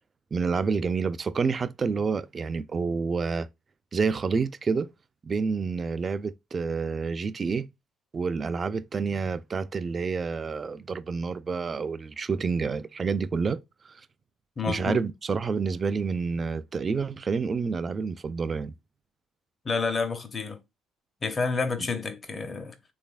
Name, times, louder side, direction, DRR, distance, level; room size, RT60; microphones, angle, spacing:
voice 1, 0.3-3.5 3.9-4.9 5.2-7.7 8.1-13.6 13.9-14.0 14.6-18.7, right 5 dB, 40° right, 0.4 m, -28 dB
voice 2, 14.6-15.0 19.6-20.6 21.2-22.7, left 4 dB, 35° left, 0.8 m, -29 dB
3.3 x 3.2 x 2.4 m
hypercardioid pair, 60°, 0 cm